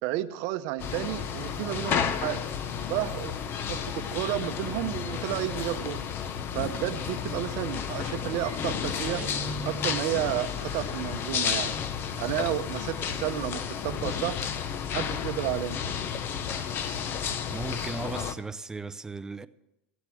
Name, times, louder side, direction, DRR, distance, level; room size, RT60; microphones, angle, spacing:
voice 1, 0.0-2.4 2.9-3.3 3.7-6.0 6.5-9.2 9.6-11.8 12.2-14.4 14.9-15.8, right 14 dB, 65° right, 0.7 m, -31 dB
sound 1, 0.8-18.3, left 7 dB, 40° left, 0.9 m, -32 dB
Guitar, 9.1-10.3, right 4 dB, 25° right, 1.3 m, -40 dB
voice 2, 17.5-19.5, right 3 dB, 10° right, 0.5 m, -36 dB
15.0 x 8.1 x 7.7 m
supercardioid pair, 135°, 6 cm